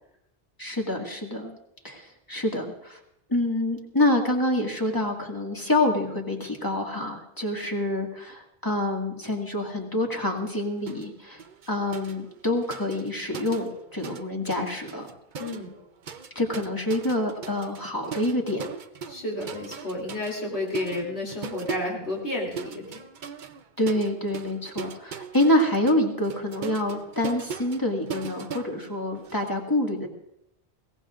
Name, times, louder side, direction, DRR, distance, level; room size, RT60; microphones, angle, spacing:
voice 1, 0.6-1.6 1.8-3.0 3.3-11.4 11.7-15.1 16.4-18.7 23.8-30.1, left 1 dB, 20° left, 0 dB, 2.0 m, -27 dB
sound 1, 10.9-11.1 11.4-14.2 14.5-29.5, right 6 dB, 50° right, 0.8 m, -40 dB
voice 2, 15.4-15.7 19.1-23.1, left 1 dB, 80° left, -2 dB, 3.5 m, -31 dB
21.5 x 17.5 x 2.5 m, 0.80 s
omnidirectional pair, 1.1 m